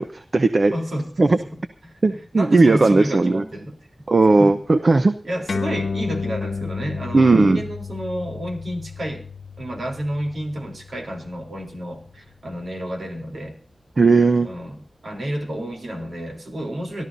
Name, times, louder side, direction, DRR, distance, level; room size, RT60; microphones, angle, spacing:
voice 1, 0.0-0.7 1.2-1.4 2.0-3.4 4.1-5.1 7.1-7.6 14.0-14.5, right 3 dB, 50° right, 9 dB, 0.8 m, -16 dB
voice 2, 0.7-1.3 1.5-3.8 4.4-4.6 5.2-9.2 9.6-13.6 14.4-17.1, equal, 70° right, 2 dB, 3.4 m, -30 dB
sound 1, 5.5-12.3, left 5 dB, 80° left, 0.9 m, -32 dB
26.5 x 13.0 x 2.7 m, 0.40 s
wide cardioid pair, 75°, 0 cm